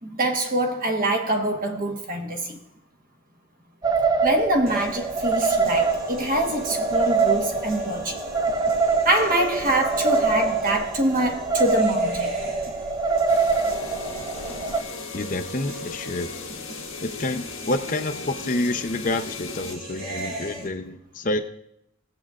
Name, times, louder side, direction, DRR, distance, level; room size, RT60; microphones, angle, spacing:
voice 1, 0.0-2.6 4.2-8.2 9.0-12.3, right 1 dB, 45° right, 1.2 m, -24 dB
sound 1, 3.8-14.8, right 4 dB, 20° right, 0.3 m, -24 dB
sound 2, 4.7-20.7, right 1 dB, 85° right, 2.8 m, -38 dB
sound 3, 13.3-19.8, left 5 dB, 85° left, 1.4 m, -39 dB
voice 2, 15.1-16.3 17.0-21.4, left 2 dB, 40° left, 0.6 m, -28 dB
18.5 x 7.6 x 2.4 m
head